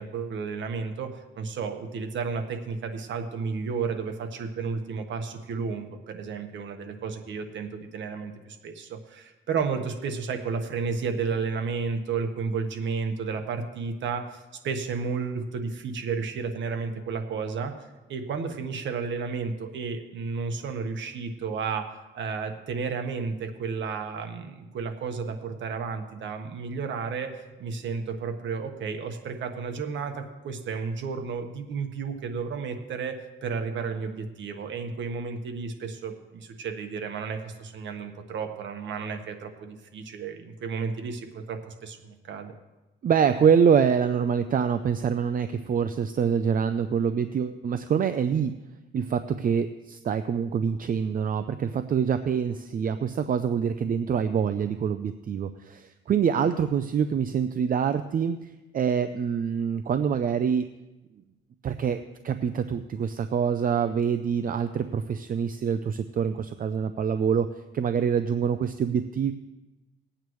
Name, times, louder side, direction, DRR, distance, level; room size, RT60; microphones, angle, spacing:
voice 1, 0.0-17.7 18.1-42.5, right 5 dB, 70° right, 6 dB, 1.3 m, -32 dB
voice 2, 43.0-48.5 48.9-60.6 61.6-67.5 67.7-69.3, right 7 dB, 45° right, 10 dB, 0.6 m, -25 dB
20.0 x 8.8 x 3.2 m, 1.1 s
cardioid pair, 90°, 20 cm